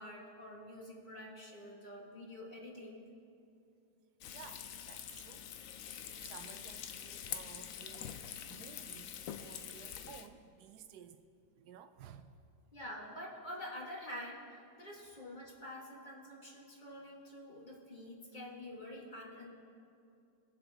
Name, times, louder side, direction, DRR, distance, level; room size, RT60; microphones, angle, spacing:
voice 1, 0.0-3.1 12.7-19.5, left 1 dB, 30° left, -3 dB, 1.5 m, -47 dB
Frying (food), 4.2-10.3, left 9 dB, 70° left, 0.8 m, -45 dB
voice 2, 4.3-5.5 6.2-11.2 11.5-12.3, right 8 dB, 75° right, 9 dB, 1.1 m, -55 dB
19.5 x 7.5 x 3.4 m, 2.6 s
omnidirectional pair, 1.9 m